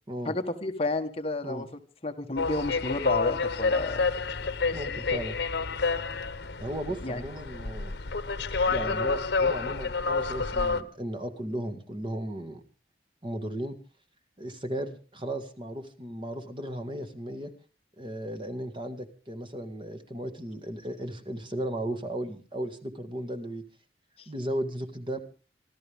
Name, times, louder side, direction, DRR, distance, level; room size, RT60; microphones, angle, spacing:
voice 1, 0.2-1.7 2.0-4.0 7.0-7.2 24.2-24.3, left 2 dB, 35° left, 6 dB, 1.3 m, -31 dB
sound 1, 2.4-10.8, left 4 dB, 75° left, 1.0 m, -29 dB
voice 2, 4.7-5.4 6.6-7.9 8.7-12.6 13.2-13.7 14.4-17.5 18.0-23.6 24.3-25.2, right 1 dB, 30° right, 5 dB, 1.7 m, -35 dB
25.5 x 13.5 x 3.5 m, 0.34 s
head